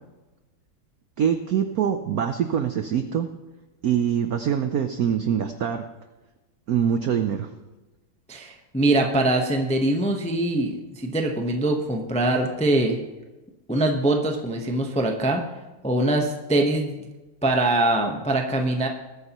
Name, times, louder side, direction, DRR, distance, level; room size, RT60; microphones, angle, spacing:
voice 1, 1.2-3.3 3.8-5.8 6.7-7.5, right 8 dB, 75° right, 8 dB, 0.8 m, -24 dB
voice 2, 8.3-13.0 13.7-15.4 15.8-17.1 17.4-18.9, right 2 dB, 10° left, 3 dB, 0.4 m, -23 dB
20.0 x 9.7 x 3.0 m, 1.1 s
omnidirectional pair, 2.3 m